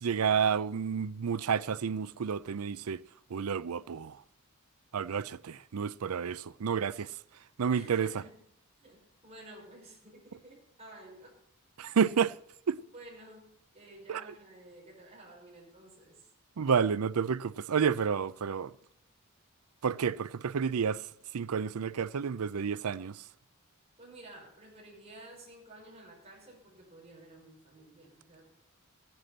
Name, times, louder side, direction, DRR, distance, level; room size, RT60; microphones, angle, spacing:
voice 1, 0.0-3.0 3.3-4.2 4.9-7.1 7.6-8.1 11.8-12.3 12.7-12.8 14.1-14.2 16.6-18.7 19.8-21.0 21.3-23.2, right 6 dB, 85° right, 0.5 m, -30 dB
voice 2, 7.7-8.4 8.8-11.4 12.9-16.3 24.0-28.5, right 1 dB, 30° right, 6.1 m, -52 dB
15.0 x 10.5 x 5.9 m
head